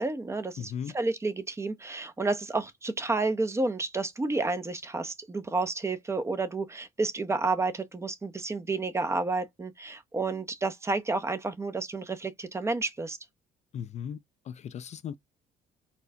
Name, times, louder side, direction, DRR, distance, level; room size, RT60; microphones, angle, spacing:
voice 1, 0.0-13.2, right 3 dB, 15° right, 0.6 m, -30 dB
voice 2, 0.6-0.9 13.7-14.2 14.5-15.2, left 8 dB, 40° left, 0.4 m, -37 dB
4.3 x 2.2 x 2.7 m
cardioid pair, 110°, 17 cm